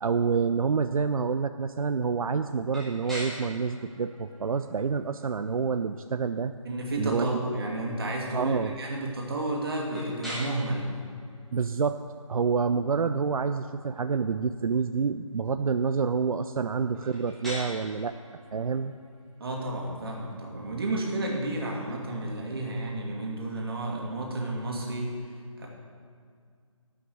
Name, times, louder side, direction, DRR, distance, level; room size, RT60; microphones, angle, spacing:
voice 1, 0.0-6.5 7.0-7.4 8.3-8.7 11.5-12.0 12.3-18.1 18.5-18.9, right 5 dB, 85° right, 9 dB, 0.5 m, -28 dB
sound 1, 2.7-22.5, equal, ahead, 1.3 m, -46 dB
voice 2, 6.6-10.9 19.4-25.7, right 1 dB, 45° right, -1 dB, 2.1 m, -32 dB
11.5 x 5.9 x 7.7 m, 2.1 s
figure-of-eight pair, 170°, 17 cm